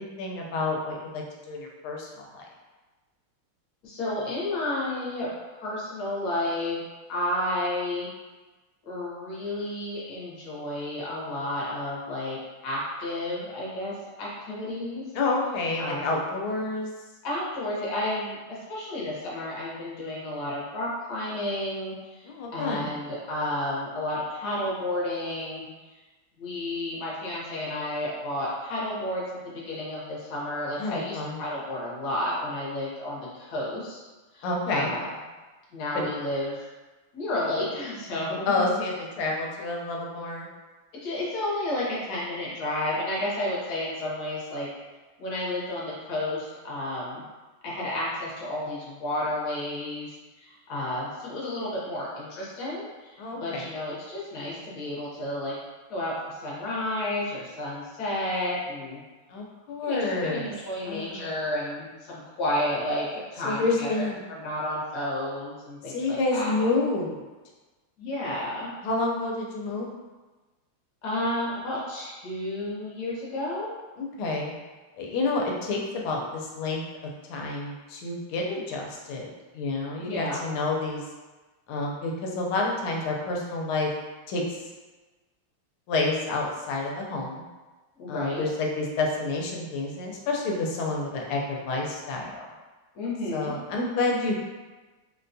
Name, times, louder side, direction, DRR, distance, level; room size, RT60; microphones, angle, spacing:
voice 1, 0.0-2.5 15.1-16.9 22.2-22.9 30.8-31.4 34.4-34.9 35.9-36.1 38.5-40.5 53.2-53.7 59.3-60.5 60.9-61.3 63.4-64.2 65.9-67.2 68.8-69.9 74.0-74.6 75.0-79.3 79.5-81.0 81.7-83.9 84.3-84.6 85.9-87.4 88.1-92.4 93.3-94.4, left 3 dB, 80° left, -1 dB, 1.5 m, -29 dB
voice 2, 3.8-6.8 7.1-8.1 8.9-12.4 12.6-13.9 14.2-15.0 15.8-16.1 17.2-25.6 26.4-34.0 34.3-35.1 35.7-36.7 37.1-38.8 41.0-44.7 45.2-47.2 47.6-55.5 55.9-59.0 59.8-66.5 68.0-68.7 71.0-73.7 80.0-80.4 88.0-88.4 92.9-93.5, left 1 dB, 55° left, -6 dB, 1.3 m, -31 dB
4.0 x 2.2 x 2.6 m, 1.2 s
omnidirectional pair, 2.3 m